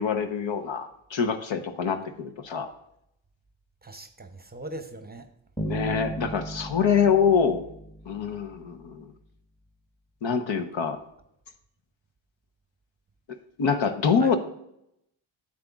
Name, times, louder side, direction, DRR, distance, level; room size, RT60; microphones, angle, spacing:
voice 1, 0.0-2.7 5.6-7.6 8.1-9.1 10.2-11.0 13.6-14.4, left 6 dB, 65° left, 8 dB, 1.0 m, -25 dB
voice 2, 3.8-5.3 14.2-14.4, right 2 dB, 20° right, 8 dB, 0.8 m, -40 dB
Bass guitar, 5.6-8.7, right 2 dB, 5° left, 1.3 m, -36 dB
9.4 x 7.5 x 2.4 m, 0.78 s
supercardioid pair, 45°, 50 cm